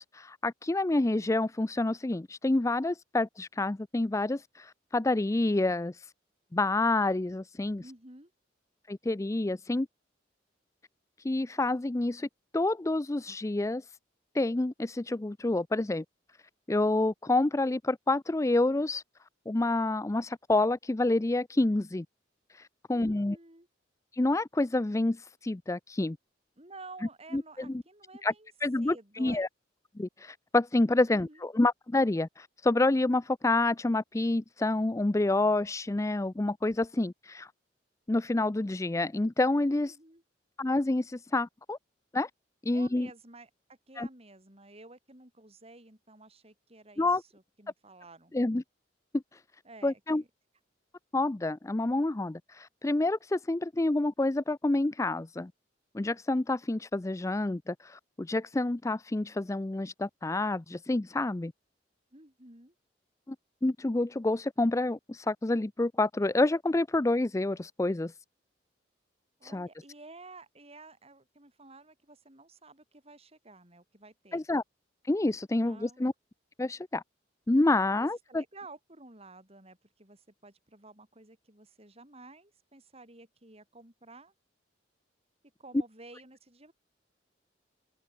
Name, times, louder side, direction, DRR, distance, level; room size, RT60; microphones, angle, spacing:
voice 1, 0.0-6.1 6.5-7.8 8.9-9.9 11.2-12.3 12.5-13.9 14.3-16.0 16.7-19.0 19.5-22.1 22.5-23.4 24.1-26.2 27.3-27.8 28.2-28.3 28.6-29.5 30.0-37.5 38.1-40.0 40.6-41.8 42.1-42.3 42.6-43.1 44.0-44.1 47.0-47.2 48.3-48.6 49.3-49.4 49.8-50.2 51.1-55.5 55.9-61.5 63.3-63.4 63.6-68.1 69.4-69.7 74.3-74.6 75.0-76.1 76.6-77.0 77.5-78.4, left 2 dB, 15° left, 0.4 m, -28 dB
voice 2, 7.8-8.3 22.9-23.7 26.6-28.5 28.8-29.5 31.1-31.4 39.8-40.2 42.7-48.3 49.6-50.3 62.1-62.7 69.4-74.5 75.6-76.0 78.0-84.3 85.6-86.7, right 2 dB, 35° right, 6.1 m, -52 dB
open air
head